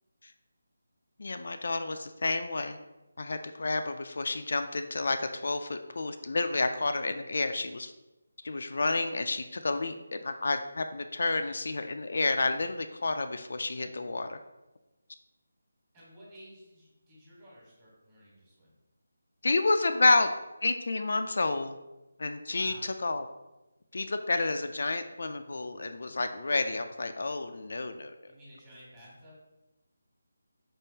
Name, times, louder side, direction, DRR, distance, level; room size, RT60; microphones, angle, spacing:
voice 1, 1.2-2.8 3.2-7.9 8.4-14.4 19.4-20.3 20.6-21.8 22.2-23.3 23.9-28.1, left 3 dB, 60° left, 7 dB, 0.3 m, -30 dB
voice 2, 15.9-18.7 22.5-22.9 28.2-29.4, equal, 20° right, -6 dB, 1.4 m, -53 dB
5.1 x 3.5 x 2.8 m, 1.0 s
figure-of-eight pair, 170°, 0 cm